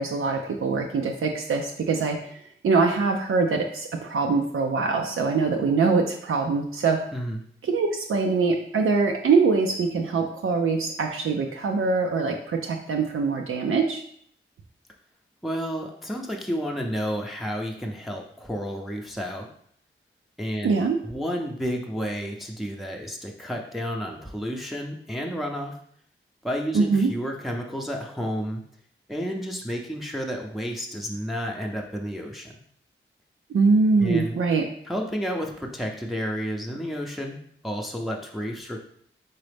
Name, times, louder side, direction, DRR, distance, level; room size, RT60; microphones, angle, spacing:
voice 1, 0.0-2.4 2.6-7.0 7.6-14.0 20.6-21.0 26.7-27.1 33.5-34.7, right 4 dB, 85° right, 2 dB, 0.5 m, -23 dB
voice 2, 15.4-19.5 20.4-20.7 21.0-25.8 26.4-28.6 29.1-32.5 34.0-34.4 34.9-37.4 37.6-38.8, equal, ahead, 0 dB, 0.6 m, -31 dB
4.0 x 3.7 x 3.4 m, 0.65 s
cardioid pair, 55°, 21 cm